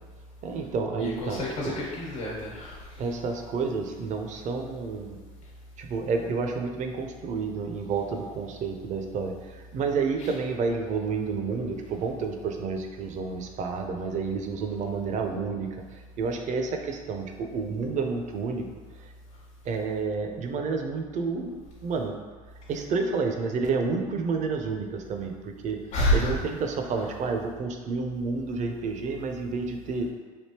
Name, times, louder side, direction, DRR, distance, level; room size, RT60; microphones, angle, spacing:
voice 1, 0.4-1.8 3.0-5.2 5.8-18.7 19.0-19.1 19.6-22.2 22.7-25.8 26.1-30.1, right 4 dB, 40° right, 4 dB, 0.5 m, -30 dB
voice 2, 1.0-3.1 10.2-10.4 25.9-26.4 26.9-27.2, equal, 75° left, -5 dB, 1.1 m, -29 dB
3.4 x 2.6 x 2.8 m, 1.4 s
hypercardioid pair, 80°, 19 cm